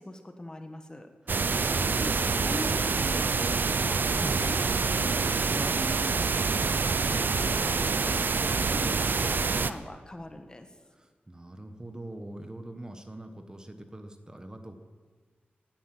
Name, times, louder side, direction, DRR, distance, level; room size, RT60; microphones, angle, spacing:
voice 1, 0.0-1.1 2.0-7.1 7.4-8.2 8.5-9.0 9.3-10.7, left 1 dB, 20° left, 6 dB, 1.5 m, -41 dB
voice 2, 1.2-2.2 4.2-4.4 10.9-14.8, right 1 dB, 20° right, 6 dB, 1.4 m, -43 dB
sound 1, 1.3-9.7, right 4 dB, 60° right, 0.7 m, -26 dB
18.0 x 10.0 x 7.8 m, 1.5 s
wide cardioid pair, 105°, 4 cm